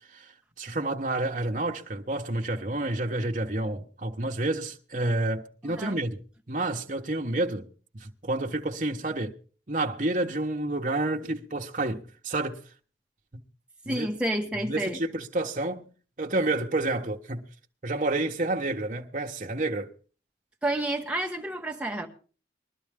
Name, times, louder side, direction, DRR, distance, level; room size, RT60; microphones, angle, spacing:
voice 1, 0.6-6.2 6.5-7.7 7.9-9.4 9.7-12.6 13.9-14.1 14.6-15.8 16.2-17.4 17.8-19.9, right 2 dB, 45° right, 1.2 m, -29 dB
voice 2, 5.6-6.0 13.8-15.0 20.6-22.1, right 1 dB, 5° right, 1.6 m, -30 dB
21.0 x 12.0 x 3.7 m
head